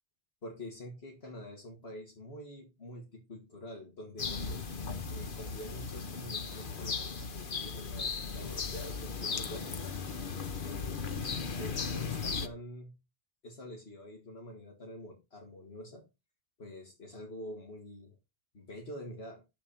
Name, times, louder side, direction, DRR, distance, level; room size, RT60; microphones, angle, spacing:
voice 1, 0.4-4.6 5.1-10.0 10.6-13.0 13.4-16.1 16.6-18.2 18.5-19.5, left 1 dB, 70° left, 0 dB, 2.4 m, -46 dB
sound 1, 4.2-12.5, left 5 dB, 55° left, 1.2 m, -37 dB
10.0 x 7.2 x 4.4 m, 0.26 s
omnidirectional pair, 1.1 m